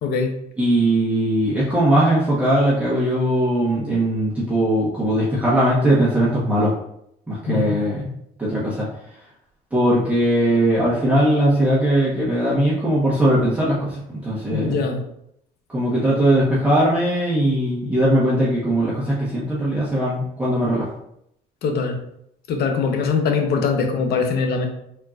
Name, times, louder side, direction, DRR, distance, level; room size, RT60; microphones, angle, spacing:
voice 1, 0.6-6.7 7.3-8.0 8.4-8.8 9.7-14.8 15.7-20.9, right 1 dB, 10° right, -8 dB, 1.1 m, -19 dB
voice 2, 7.5-7.8 14.5-15.0 21.6-22.0 22.5-24.7, left 5 dB, 70° left, 4 dB, 0.8 m, -22 dB
4.4 x 3.7 x 2.5 m, 0.76 s
cardioid pair, 110°, 17 cm